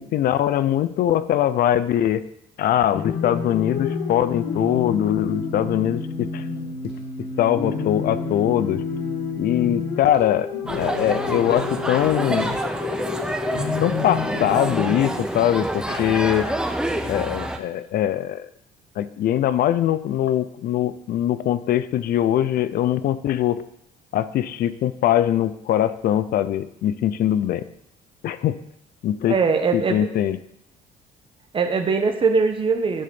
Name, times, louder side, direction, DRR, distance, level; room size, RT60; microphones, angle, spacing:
voice 1, 0.0-2.2 2.6-6.4 7.4-8.8 9.4-12.6 13.8-16.5 17.0-18.5 19.0-23.6 24.1-27.7 28.2-28.6 29.0-29.4 29.7-30.4, left 11 dB, 60° left, 14 dB, 0.6 m, -22 dB
sound 1, 2.9-14.9, left 5 dB, 80° left, 1.7 m, -29 dB
sound 2, 10.7-17.6, right 1 dB, 5° right, 0.8 m, -27 dB
voice 2, 29.3-30.1 31.5-33.0, right 4 dB, 30° right, 5 dB, 1.1 m, -21 dB
10.0 x 3.9 x 7.0 m, 0.76 s
cardioid pair, 110°, 17 cm